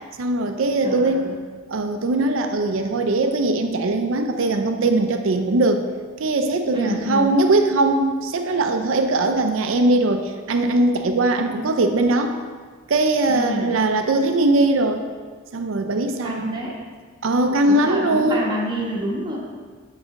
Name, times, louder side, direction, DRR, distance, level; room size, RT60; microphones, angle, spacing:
voice 1, 0.2-1.3 1.7-5.8 6.2-12.4 12.9-15.0 15.5-16.5 17.2-18.5, right 2 dB, 75° right, 6 dB, 0.5 m, -20 dB
voice 2, 0.8-1.3 6.7-7.3 13.3-13.7 16.2-16.8 17.6-19.4, equal, 25° right, -3 dB, 1.2 m, -28 dB
8.4 x 4.1 x 3.7 m, 1.5 s
head